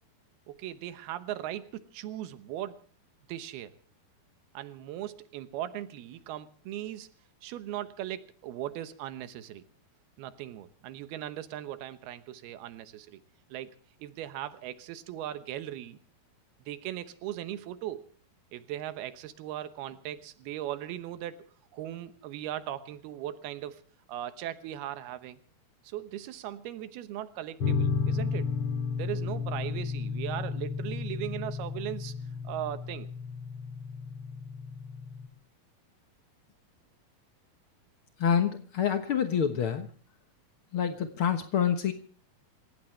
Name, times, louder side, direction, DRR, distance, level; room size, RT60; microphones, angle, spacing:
voice 1, 0.5-2.8 3.3-3.7 4.5-7.1 7.4-9.6 10.2-13.2 13.5-13.7 14.0-16.0 16.7-18.1 18.5-21.4 21.7-23.8 24.1-25.4 25.8-28.5 29.0-32.1 32.4-33.1, right 12 dB, 85° right, 12 dB, 3.1 m, -38 dB
sound 1, 27.6-35.3, left 5 dB, 45° left, 2.3 m, -33 dB
voice 2, 38.2-39.9 40.7-41.9, left 8 dB, 85° left, 7 dB, 1.2 m, -27 dB
28.0 x 15.5 x 3.3 m, 0.42 s
omnidirectional pair, 4.4 m